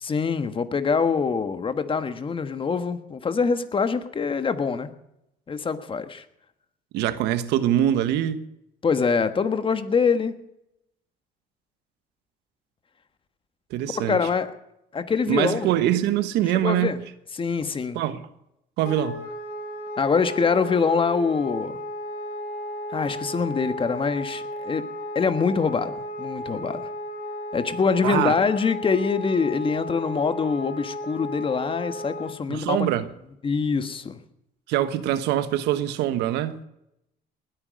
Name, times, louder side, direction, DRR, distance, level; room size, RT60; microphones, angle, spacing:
voice 1, 0.0-4.9 5.5-6.2 8.8-10.3 13.9-14.5 14.9-15.7 16.5-17.0 17.3-18.0 20.0-21.8 22.9-24.9 25.1-26.9 27.5-32.9 33.4-34.2, left 5 dB, 30° left, 1.4 m, -24 dB
voice 2, 6.9-8.4 13.7-14.2 15.3-16.9 17.9-18.2 18.8-19.2 28.0-28.3 32.5-33.0 34.7-36.6, right 12 dB, 90° right, 1.3 m, -23 dB
Wind instrument woodwind instrument, 18.8-32.3, equal, 65° left, 6.2 m, -34 dB
19.5 x 9.5 x 6.4 m
cardioid pair, 110°, 17 cm